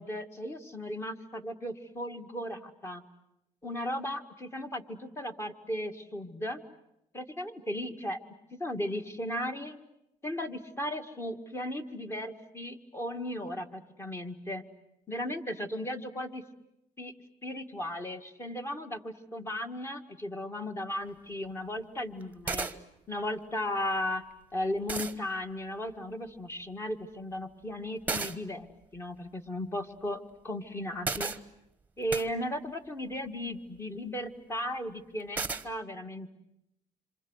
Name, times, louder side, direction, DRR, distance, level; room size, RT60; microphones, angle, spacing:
voice 1, 0.0-3.0 3.6-6.6 7.1-8.2 8.5-9.8 10.2-14.6 15.1-16.4 17.0-17.1 17.4-22.7 23.1-24.2 24.5-28.7 28.9-31.3 32.0-36.4, left 1 dB, 20° left, 6 dB, 2.1 m, -36 dB
sound 1, 21.1-21.2 22.2-22.3 22.5-22.8 24.3-24.4 24.9-25.1 28.1-28.4 31.0-31.4 32.1-32.3 35.4-35.6, right 4 dB, 15° right, 1.3 m, -32 dB
27.0 x 27.0 x 8.2 m, 0.82 s
cardioid pair, 130°, 13 cm